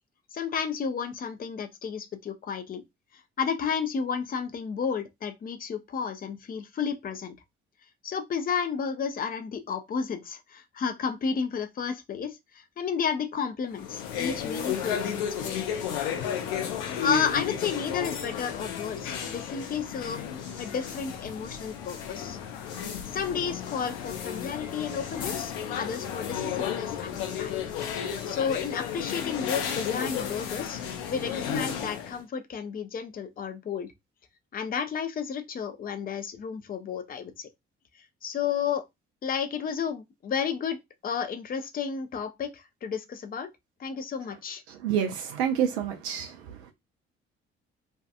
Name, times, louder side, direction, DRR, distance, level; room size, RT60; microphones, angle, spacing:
voice 1, 0.3-2.8 3.4-7.4 8.0-15.8 17.0-20.2 20.6-22.4 23.1-27.5 28.3-30.8 31.1-33.9 34.5-37.5 38.2-38.8 39.2-43.5 43.8-44.6, left 6 dB, 25° left, 0.5 m, -32 dB
sound 1, 13.7-32.2, left 8 dB, 65° left, 0.6 m, -33 dB
voice 2, 44.7-46.4, right 8 dB, 75° right, 0.5 m, -28 dB
2.6 x 2.3 x 2.4 m
figure-of-eight pair, 45°, 33 cm